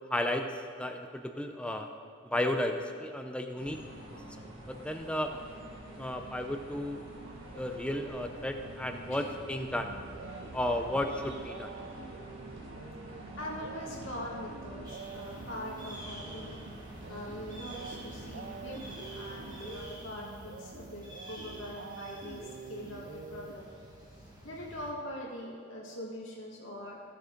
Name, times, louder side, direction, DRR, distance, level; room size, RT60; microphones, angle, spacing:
voice 1, 0.1-0.5 0.8-1.9 2.2-3.8 4.1-4.2 4.7-5.4 6.0-7.0 7.6-9.9 10.5-11.7, left 1 dB, 5° left, 5 dB, 0.5 m, -33 dB
sound 1, 3.6-19.9, right 1 dB, 90° right, 1.7 m, -47 dB
sound 2, 9.7-24.1, right 5 dB, 50° right, 0.4 m, -47 dB
voice 2, 13.4-16.6 17.1-23.0 23.3-23.7 24.4-27.1, left 1 dB, 85° left, -4 dB, 2.0 m, -42 dB
sound 3, 14.8-24.9, equal, 20° right, 1.6 m, -50 dB
15.0 x 6.8 x 3.9 m, 2.1 s
head